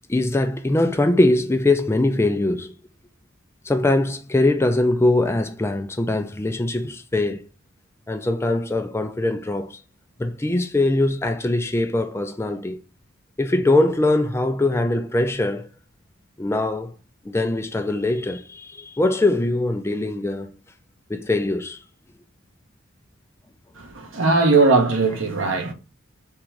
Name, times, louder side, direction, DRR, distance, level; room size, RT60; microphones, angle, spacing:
voice 1, 0.0-2.7 3.6-7.5 8.1-9.8 10.2-12.8 13.4-15.7 16.4-16.9 17.2-20.5 21.1-21.8, left 2 dB, 10° left, 0.3 m, -22 dB
voice 2, 23.8-25.7, right 3 dB, 65° right, 0.9 m, -19 dB
3.6 x 3.0 x 4.6 m
head